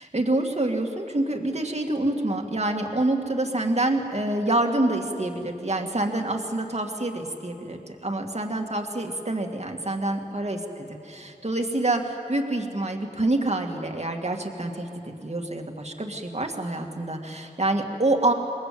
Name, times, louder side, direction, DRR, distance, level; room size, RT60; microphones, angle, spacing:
voice 1, 0.0-18.3, right 2 dB, 40° right, 3 dB, 2.5 m, -27 dB
27.5 x 21.5 x 7.9 m, 2.7 s
wide cardioid pair, 50°, 17 cm